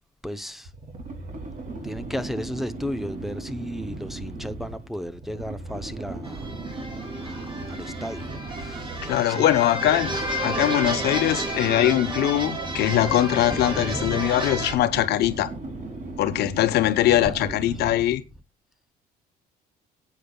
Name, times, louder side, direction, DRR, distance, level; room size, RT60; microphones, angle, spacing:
voice 1, 0.2-0.7 1.8-6.5 7.2-9.5 13.5-14.4 17.0-17.9, equal, ahead, 0.7 m, -34 dB
sound 1, 0.6-18.3, right 2 dB, 50° right, 2.9 m, -37 dB
sound 2, 6.2-14.7, right 1 dB, 30° right, 2.5 m, -31 dB
voice 2, 9.0-10.2 10.4-15.5 16.2-18.2, left 13 dB, 75° left, 0.9 m, -22 dB
18.0 x 8.4 x 2.3 m
cardioid pair, 110°, 17 cm